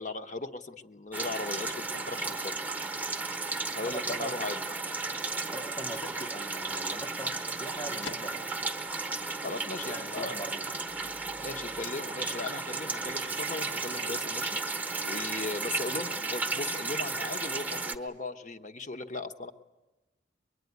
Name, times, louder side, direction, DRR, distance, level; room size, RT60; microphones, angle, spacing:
voice 1, 0.0-2.6 3.7-4.7 9.4-10.3 11.4-14.6 15.0-19.5, left 3 dB, 40° left, 6 dB, 1.1 m, -37 dB
sound 1, 1.1-18.0, right 3 dB, 10° right, 1.0 m, -34 dB
voice 2, 3.3-4.5 5.5-8.6 9.8-10.8, right 1 dB, 20° left, 5 dB, 0.9 m, -42 dB
Bell / Microwave oven, 5.7-13.9, left 4 dB, 70° left, 1.3 m, -52 dB
23.5 x 23.5 x 9.5 m, 1.1 s
head